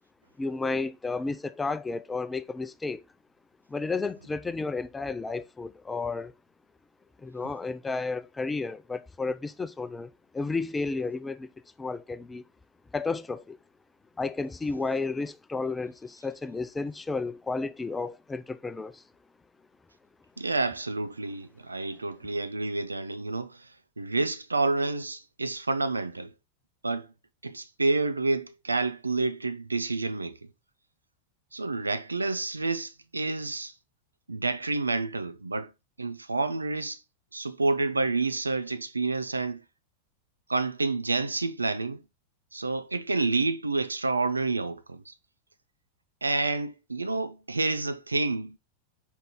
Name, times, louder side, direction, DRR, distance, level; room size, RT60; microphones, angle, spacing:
voice 1, 0.4-3.0 3.7-6.3 7.2-11.5 11.8-12.4 12.9-13.6 14.2-19.0, left 3 dB, 10° left, 0.4 m, -32 dB
voice 2, 20.4-23.6 24.0-26.3 26.8-27.1 27.4-30.4 31.5-33.7 34.3-35.7 36.0-37.0 37.3-39.6 40.5-42.0 42.5-45.1 46.2-48.6, right 3 dB, 80° right, 0.6 m, -29 dB
5.2 x 4.7 x 4.0 m
figure-of-eight pair, 90°, 0 cm